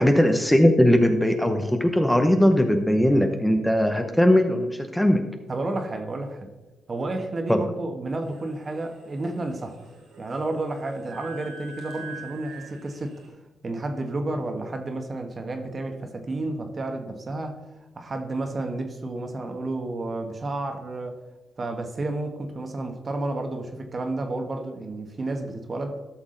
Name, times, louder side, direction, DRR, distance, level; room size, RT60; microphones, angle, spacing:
voice 1, 0.0-5.2 7.5-7.6, equal, 5° left, 5 dB, 0.8 m, -19 dB
voice 2, 5.5-6.5 6.9-9.8 10.2-13.2 13.6-17.6 17.9-21.2 21.6-26.0, right 2 dB, 40° right, 5 dB, 1.4 m, -31 dB
sound 1, 8.2-13.3, right 3 dB, 85° right, 3.6 m, -45 dB
13.0 x 6.0 x 3.9 m, 1.1 s
cardioid pair, 75°, 0 cm